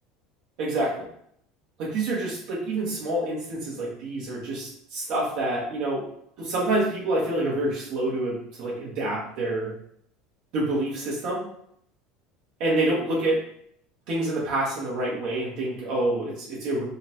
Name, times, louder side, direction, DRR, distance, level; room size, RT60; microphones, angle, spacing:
voice 1, 0.6-1.1 1.8-6.1 6.4-9.7 10.5-11.5 12.6-13.4 14.1-16.8, right 2 dB, 55° right, -6 dB, 1.1 m, -27 dB
3.9 x 2.2 x 4.3 m, 0.70 s
cardioid pair, 160°, 0 cm